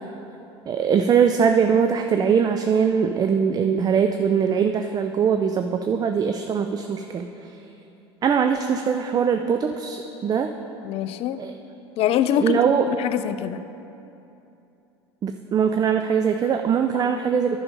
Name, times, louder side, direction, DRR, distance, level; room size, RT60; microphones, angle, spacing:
voice 1, 0.7-7.3 8.2-10.6 11.4-11.5 12.4-12.9 15.2-17.6, right 7 dB, 25° right, 6 dB, 0.4 m, -21 dB
voice 2, 10.8-11.4 12.0-12.6 12.9-13.6 16.9-17.0, left 11 dB, 45° left, 12 dB, 0.4 m, -24 dB
10.5 x 5.5 x 4.8 m, 2.9 s
hypercardioid pair, 75°, 14 cm